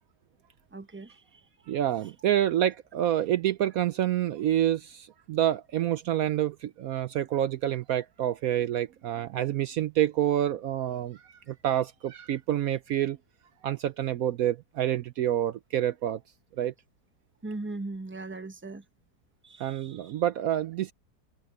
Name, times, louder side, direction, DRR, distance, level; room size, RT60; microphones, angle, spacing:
voice 1, 0.7-1.4 17.4-18.8 19.4-20.1, right 2 dB, 10° right, 0.6 m, -39 dB
voice 2, 1.7-13.2 13.6-16.2 16.6-16.7 19.6-20.9, right 11 dB, 70° right, 0.9 m, -28 dB
omnidirectional pair, 1.9 m